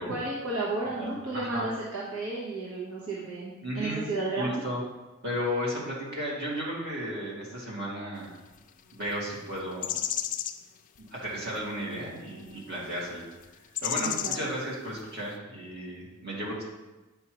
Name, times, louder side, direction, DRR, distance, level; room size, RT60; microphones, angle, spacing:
voice 1, 0.0-4.6 14.0-14.5, right 2 dB, 75° right, -6 dB, 1.3 m, -33 dB
voice 2, 1.0-1.7 3.6-4.1 4.4-4.8 5.2-8.3 8.9-10.0 11.1-13.5 13.8-16.6, equal, 55° right, -6 dB, 2.4 m, -34 dB
sound 1, 8.9-9.1 9.8-10.6 11.5-11.6 12.5-12.6 12.8-13.1 13.8-14.5 15.0-15.1, left 10 dB, 40° left, 0.3 m, -32 dB
8.3 x 5.5 x 3.1 m, 1.1 s
head